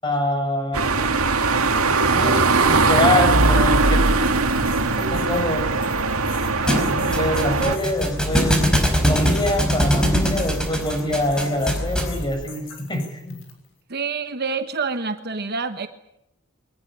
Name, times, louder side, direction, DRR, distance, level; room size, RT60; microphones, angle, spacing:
voice 1, 0.0-0.8 2.0-3.9 5.0-5.6 7.0-8.6 9.0-12.6 12.9-13.4, left 1 dB, 20° left, 4 dB, 7.0 m, -24 dB
sound 1, 0.7-7.8, right 3 dB, 85° right, 2.1 m, -20 dB
sound 2, 2.9-13.7, left 6 dB, 60° left, 6.4 m, -44 dB
Thump thud, 6.7-12.2, equal, 5° left, 4.7 m, -22 dB
voice 2, 13.9-15.9, right 4 dB, 50° right, 9 dB, 1.2 m, -27 dB
23.5 x 19.5 x 9.1 m, 0.82 s
head